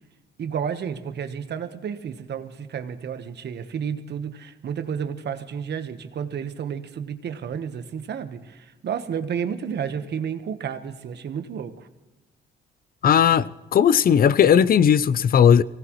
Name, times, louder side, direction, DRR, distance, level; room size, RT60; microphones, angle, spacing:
voice 1, 0.4-11.9, right 7 dB, 60° right, 1.2 m, -31 dB
voice 2, 13.0-15.6, left 8 dB, 45° left, 0.5 m, -17 dB
24.5 x 17.5 x 3.1 m
cardioid pair, 90°, 20 cm